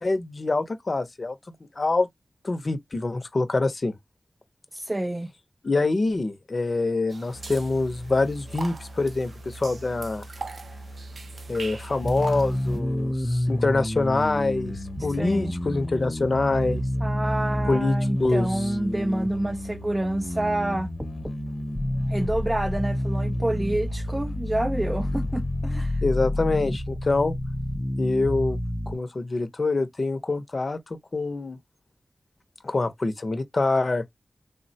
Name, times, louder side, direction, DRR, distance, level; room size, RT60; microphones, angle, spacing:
voice 1, 0.0-1.3 1.8-2.1 2.4-4.0 5.6-10.2 11.5-14.7 15.0-16.8 17.7-18.5 26.0-27.3 28.0-28.6 28.9-31.6 32.6-34.0, left 3 dB, 50° left, 0.6 m, -25 dB
voice 2, 4.7-5.3 15.1-15.5 17.0-20.9 22.1-26.0, right 1 dB, 20° right, 0.3 m, -28 dB
sound 1, 7.1-12.8, right 4 dB, 80° right, 0.5 m, -42 dB
Musical instrument, 7.3-25.7, right 1 dB, 80° left, 0.8 m, -43 dB
sound 2, 12.0-29.0, left 1 dB, 15° left, 0.6 m, -29 dB
3.4 x 2.1 x 2.7 m
wide cardioid pair, 70°, 0 cm